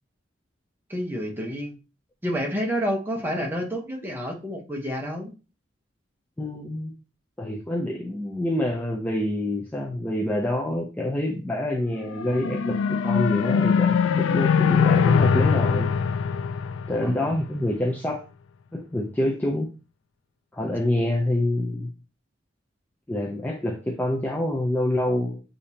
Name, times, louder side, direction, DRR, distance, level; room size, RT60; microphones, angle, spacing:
voice 1, 0.9-1.8 2.2-5.3 17.0-17.3, equal, 10° right, 1 dB, 0.9 m, -29 dB
voice 2, 6.4-6.9 7.4-15.9 16.9-18.2 18.7-19.7 20.5-21.9 23.1-25.4, left 1 dB, 10° left, -1 dB, 0.5 m, -27 dB
sound 1, 12.0-17.5, left 6 dB, 80° left, 0.4 m, -22 dB
6.6 x 2.7 x 2.8 m, 0.32 s
head